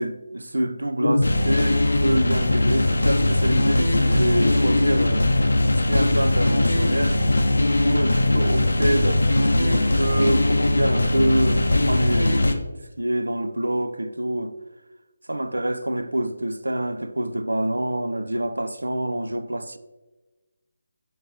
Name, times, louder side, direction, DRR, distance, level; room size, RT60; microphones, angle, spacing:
voice 1, 0.0-5.3 5.7-7.2 7.7-12.4 13.0-14.5 15.3-19.8, right 1 dB, 80° right, 0.4 m, -26 dB
sound 1, 1.0-12.5, left 2 dB, 75° left, 0.5 m, -20 dB
5.7 x 3.6 x 2.6 m
figure-of-eight pair, 155°, 0 cm